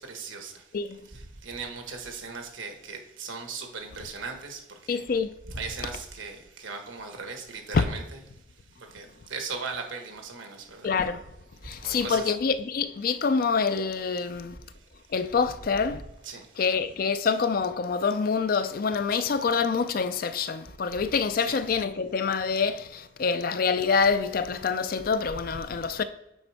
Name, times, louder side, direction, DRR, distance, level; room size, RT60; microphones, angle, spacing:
voice 1, 0.0-0.6 1.1-4.6 4.9-5.0 5.5-8.0 8.8-10.9 11.8-12.3 15.9-16.0 16.2-16.4 21.4-21.6, right 4 dB, 80° right, 1.3 m, -38 dB
voice 2, 4.9-5.4 7.7-7.8 10.8-11.2 11.6-14.6 15.1-16.0 16.6-26.0, left 5 dB, 45° left, 0.4 m, -26 dB
7.8 x 4.2 x 4.7 m
head